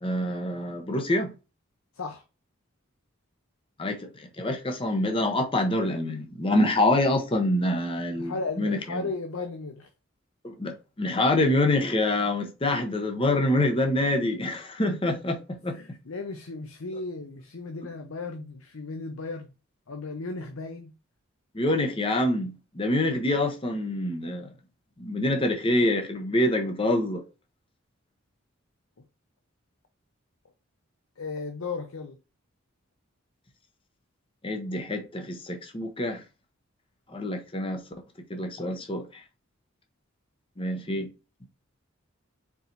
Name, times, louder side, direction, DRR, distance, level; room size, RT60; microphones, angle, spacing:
voice 1, 0.0-1.3 3.8-9.0 10.4-15.8 21.5-24.5 25.0-27.2 34.4-36.2 37.1-37.8 38.3-39.2 40.6-41.1, left 1 dB, 25° left, 0.8 m, -26 dB
voice 2, 8.2-9.9 14.9-15.0 15.7-19.5 19.9-20.9 31.2-32.2, left 3 dB, 90° left, 0.7 m, -35 dB
4.7 x 4.2 x 2.6 m
head